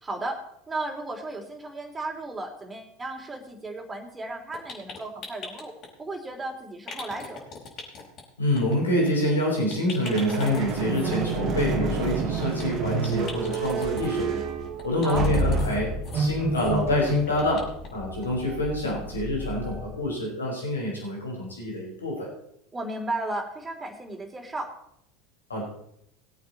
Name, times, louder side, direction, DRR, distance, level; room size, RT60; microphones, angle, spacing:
voice 1, 0.0-5.7 6.0-7.4 15.0-15.3 22.7-24.7, right 2 dB, 20° right, 3 dB, 3.6 m, -34 dB
sound 1, 4.5-5.9 6.9-8.2 8.5-8.8 9.0-9.1 9.4-9.5 9.7-11.1 12.0-12.6 13.0-14.1 14.8-15.8 16.0-16.2 16.5-16.7 17.0-17.9 18.2-18.3 18.7-18.8, left 4 dB, 45° left, 5.2 m, -40 dB
voice 2, 8.4-14.4 14.8-17.6 17.9-22.3 25.5-25.6, left 1 dB, 90° left, -3 dB, 4.8 m, -26 dB
sound 2, 10.0-20.1, right 4 dB, 45° right, 2.1 m, -29 dB
20.0 x 8.6 x 4.3 m, 0.74 s
hypercardioid pair, 80°, 0 cm